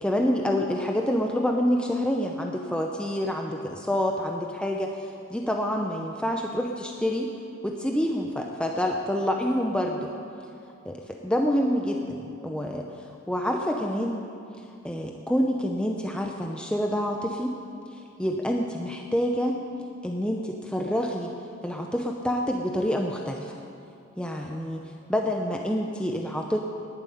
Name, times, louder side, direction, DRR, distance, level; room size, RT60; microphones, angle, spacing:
voice 1, 0.0-4.9 5.3-7.3 7.6-10.1 10.8-12.9 13.3-14.2 14.8-17.6 17.9-19.6 20.0-21.3 21.6-23.6 24.2-26.6, equal, 5° left, 1 dB, 0.6 m, -27 dB
11.0 x 9.5 x 9.2 m, 2.6 s
head